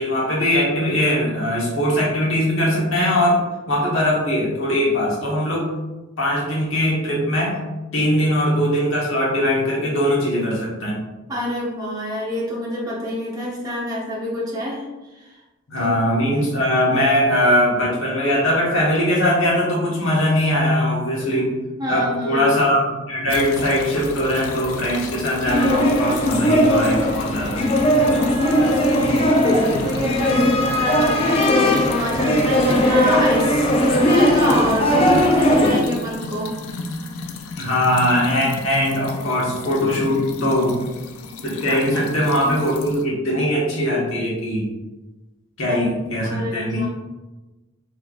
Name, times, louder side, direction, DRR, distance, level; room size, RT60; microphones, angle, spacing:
voice 1, 0.0-3.4 3.7-5.7 6.2-7.6 7.9-11.0 15.7-21.5 21.9-27.6 37.5-40.8 41.4-44.7 45.6-46.8, equal, 70° left, -5 dB, 1.4 m, -20 dB
voice 2, 11.3-14.9 15.1-15.3 15.8-15.9 21.8-22.5 28.4-36.5 41.7-42.0 42.5-42.6 45.7-45.8 46.2-46.9, equal, 15° right, -6 dB, 0.9 m, -26 dB
sound 1, 23.3-43.0, left 3 dB, 90° left, 0.4 m, -34 dB
sound 2, 25.4-35.8, left 1 dB, 25° left, 0.4 m, -18 dB
4.4 x 3.2 x 2.4 m, 1.1 s
head